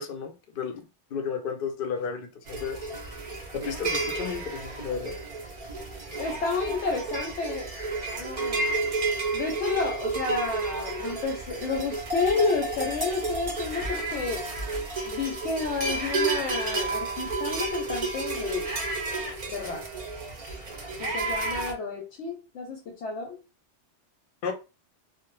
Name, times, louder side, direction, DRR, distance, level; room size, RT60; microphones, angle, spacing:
voice 1, 0.0-2.8 3.5-5.2 24.4-24.6, left 6 dB, 60° left, 0.6 m, -33 dB
sound 1, 2.5-21.7, right 3 dB, 45° right, 0.4 m, -31 dB
voice 2, 6.2-7.7 8.1-8.7 9.3-14.5 15.0-18.7 19.5-19.9 21.0-23.4, left 4 dB, 80° left, 0.9 m, -30 dB
2.1 x 2.0 x 2.9 m
omnidirectional pair, 1.2 m